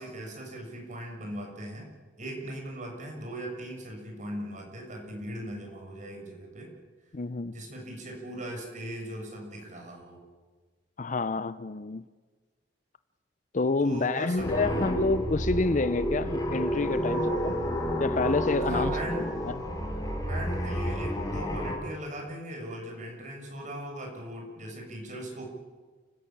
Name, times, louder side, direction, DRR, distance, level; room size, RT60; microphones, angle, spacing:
voice 1, 0.0-1.9 2.2-6.7 7.5-10.2 13.8-14.9 18.6-19.3 20.3-25.5, right 1 dB, 45° right, 6.8 m, -39 dB
voice 2, 7.1-7.6 11.0-12.1 13.5-17.6 18.0-18.9 19.4-19.6, left 3 dB, 45° left, 0.7 m, -28 dB
sound 1, 14.4-21.8, equal, 20° left, 4.5 m, -30 dB
29.5 x 15.5 x 8.8 m
head